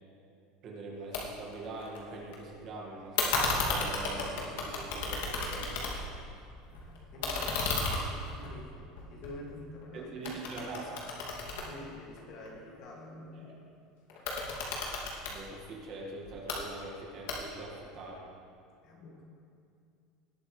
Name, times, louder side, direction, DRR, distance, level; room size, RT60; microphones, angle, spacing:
voice 1, 0.6-5.8 9.9-11.1 13.4-13.5 15.3-18.3, right 2 dB, 35° right, -2 dB, 1.9 m, -43 dB
sound 1, 1.1-1.2 1.5-2.4 3.2-6.2 6.6-9.8 10.2-12.5 14.1-15.4 16.2-16.6 17.3-17.7, left 3 dB, 80° left, 2.4 m, -33 dB
voice 2, 6.4-10.1 11.5-13.7 18.8-19.2, left 1 dB, 40° left, -2 dB, 2.3 m, -48 dB
19.5 x 9.1 x 3.3 m, 2.4 s
cardioid pair, 175°, 0 cm